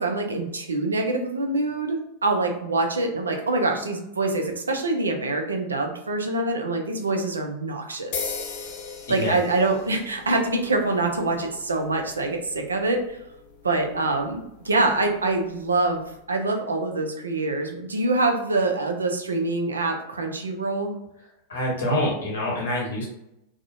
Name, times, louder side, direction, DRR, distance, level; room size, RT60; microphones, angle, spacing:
voice 1, 0.0-8.3 9.1-13.2 13.6-20.9, right 2 dB, 75° right, 3 dB, 0.4 m, -25 dB
sound 1, 8.1-16.2, left 5 dB, 45° left, 0.4 m, -40 dB
voice 2, 21.5-23.1, left 1 dB, 65° left, -3 dB, 0.8 m, -26 dB
2.4 x 2.0 x 2.5 m, 0.84 s
figure-of-eight pair, 90°, 0 cm